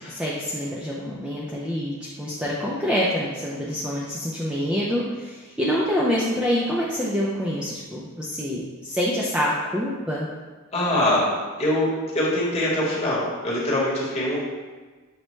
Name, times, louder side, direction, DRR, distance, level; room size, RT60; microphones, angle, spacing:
voice 1, 0.0-10.3, equal, 5° right, -6 dB, 0.3 m, -26 dB
voice 2, 10.7-14.4, left 1 dB, 30° left, -6 dB, 1.1 m, -23 dB
6.3 x 2.1 x 3.1 m, 1.3 s
head